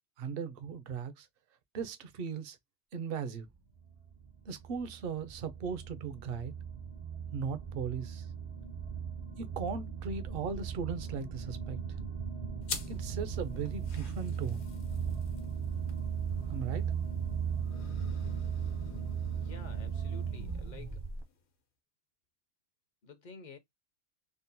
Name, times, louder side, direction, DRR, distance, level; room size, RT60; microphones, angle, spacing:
voice 1, 0.2-1.3 1.7-2.6 2.9-3.5 4.5-6.5 7.3-8.3 9.4-11.8 12.9-14.7 16.5-16.8, right 6 dB, 60° right, 0.7 m, -38 dB
sound 1, 3.7-21.2, right 7 dB, 45° right, 0.3 m, -37 dB
sound 2, 12.6-21.6, left 5 dB, 75° left, 1.1 m, -49 dB
voice 2, 19.3-21.0 23.0-23.6, left 3 dB, 55° left, 0.6 m, -50 dB
3.6 x 2.1 x 2.6 m
omnidirectional pair, 1.1 m